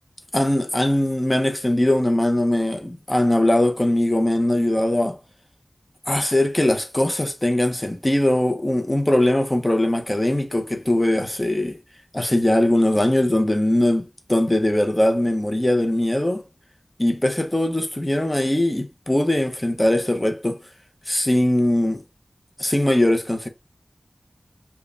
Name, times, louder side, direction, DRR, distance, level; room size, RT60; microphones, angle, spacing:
voice 1, 0.3-5.2 6.1-11.8 12.1-16.4 17.0-20.6 21.1-22.0 22.6-23.5, left 1 dB, 25° left, 0.8 m, -21 dB
5.0 x 2.3 x 2.5 m
wide cardioid pair, 60°, 0 cm